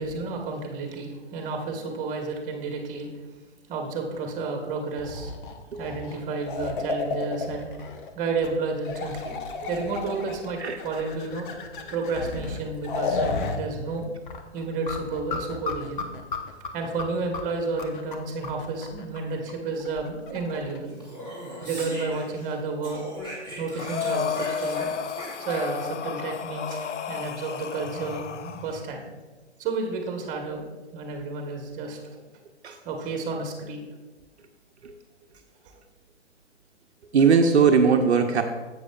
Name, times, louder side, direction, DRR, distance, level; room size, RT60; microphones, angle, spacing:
voice 1, 0.0-3.1 3.7-5.3 5.8-7.7 8.1-9.3 9.7-11.5 11.9-14.1 14.5-16.1 16.7-20.9 21.6-23.0 23.6-24.9 25.4-29.1 29.6-32.0 32.8-33.8, right 3 dB, 20° right, 2 dB, 1.3 m, -31 dB
sound 1, 5.0-8.1 8.4-8.5 8.8-13.6 13.9-14.0 14.3-20.8, left 4 dB, 45° left, 1.0 m, -33 dB
Speech, 20.9-22.5 22.8-26.0, equal, 10° left, 2.5 m, -39 dB
Breathing, 23.8-28.7, left 6 dB, 80° left, 0.5 m, -32 dB
voice 2, 37.1-38.4, right 5 dB, 65° right, 4 dB, 0.7 m, -19 dB
10.5 x 7.9 x 2.4 m, 1.3 s
figure-of-eight pair, 120°, 35 cm